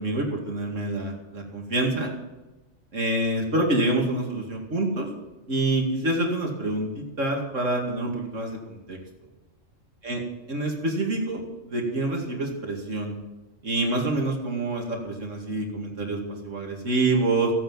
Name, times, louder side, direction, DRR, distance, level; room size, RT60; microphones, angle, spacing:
voice 1, 0.0-2.1 2.9-5.1 5.5-9.0 10.0-10.2 10.5-13.1 13.6-17.5, right 2 dB, 70° right, 0 dB, 2.7 m, -27 dB
16.0 x 9.5 x 7.4 m, 1.1 s
omnidirectional pair, 1.4 m